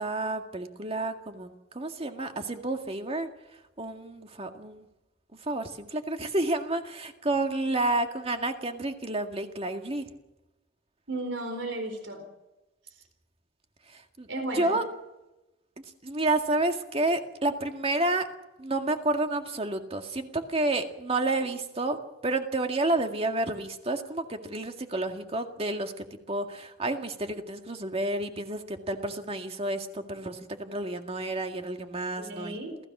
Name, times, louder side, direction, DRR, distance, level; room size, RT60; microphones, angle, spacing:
voice 1, 0.0-1.5 1.7-3.3 3.8-4.9 5.5-10.1 14.2-14.3 14.6-14.8 16.0-18.3 18.6-32.6, right 2 dB, 30° right, 5 dB, 2.0 m, -30 dB
voice 2, 11.1-12.3 14.3-14.8 32.2-32.8, right 2 dB, 90° right, 5 dB, 4.3 m, -34 dB
27.0 x 16.0 x 6.2 m, 1.0 s
head